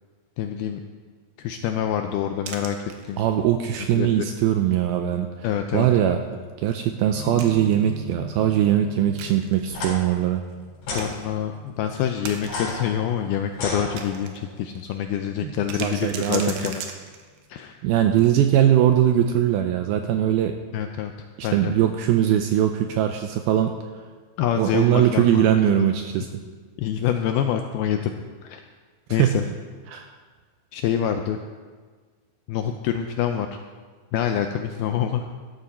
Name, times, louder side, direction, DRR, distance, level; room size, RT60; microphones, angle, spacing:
voice 1, 0.4-0.8 1.4-2.8 3.0-3.2 3.9-4.3 5.4-5.9 11.0-16.8 17.5-17.7 20.7-21.1 21.4-21.8 24.4-25.9 26.8-28.1 28.4-28.6 29.1-29.4 30.7-31.4 32.5-33.5 34.1-35.3, left 9 dB, 90° left, 6 dB, 2.2 m, -26 dB
sound 1, 2.5-3.4 3.9-4.0 4.4-4.6 5.0-5.1 6.7-7.9 9.2-10.0 10.5-10.6 10.9-11.3 12.0-12.8 13.3-14.4 14.7-14.8 15.4-17.4, right 6 dB, 70° right, 2.5 m, -38 dB
voice 2, 3.2-5.3 5.7-6.2 6.6-10.5 15.4-15.5 15.8-16.5 17.8-20.6 21.4-23.8 24.6-26.3 29.2-29.3 29.9-30.1, right 11 dB, 90° right, 6 dB, 2.2 m, -21 dB
sound 2, 7.1-14.7, left 2 dB, 40° left, 4.4 m, -43 dB
sound 3, 9.7-9.9 10.8-11.1 12.4-14.4, left 2 dB, 70° left, 5.8 m, -32 dB
14.0 x 13.0 x 4.3 m, 1.5 s
omnidirectional pair, 5.0 m